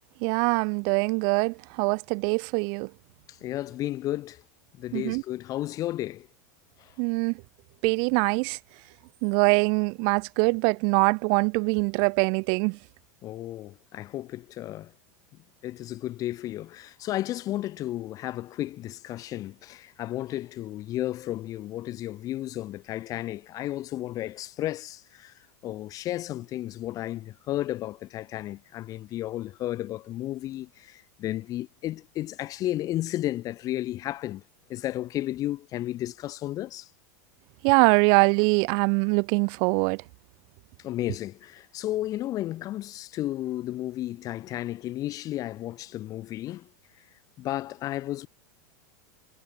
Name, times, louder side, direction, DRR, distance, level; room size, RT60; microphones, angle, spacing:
voice 1, 0.2-2.9 4.9-5.2 7.0-7.3 7.8-8.6 9.2-12.8 37.6-40.0, right 40 dB or more, 55° right, 0.5 m, -23 dB
voice 2, 3.3-4.4 4.8-6.3 6.8-6.9 13.2-14.9 15.6-25.3 25.6-34.4 34.7-36.9 40.8-46.7 47.4-48.3, left 14 dB, 40° left, 1.7 m, -33 dB
hypercardioid pair, 115°, 9 cm